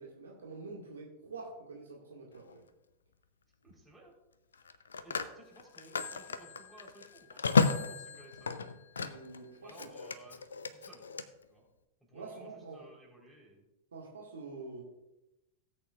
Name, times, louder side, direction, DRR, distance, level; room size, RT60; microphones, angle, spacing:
voice 1, 0.0-2.6 9.0-9.9 12.1-12.9 13.9-14.8, right 3 dB, 70° right, -1 dB, 1.8 m, -46 dB
Telephone, 2.3-2.6 4.5-9.4 9.7-11.2, left 5 dB, 70° left, 0.6 m, -33 dB
voice 2, 3.6-4.1 5.0-7.4 7.9-8.6 9.6-10.4 10.7-11.0 11.5-11.7 12.0-13.7, right 2 dB, 5° right, -2 dB, 3.9 m, -57 dB
17.0 x 8.5 x 2.4 m, 0.93 s
figure-of-eight pair, 90°, 0 cm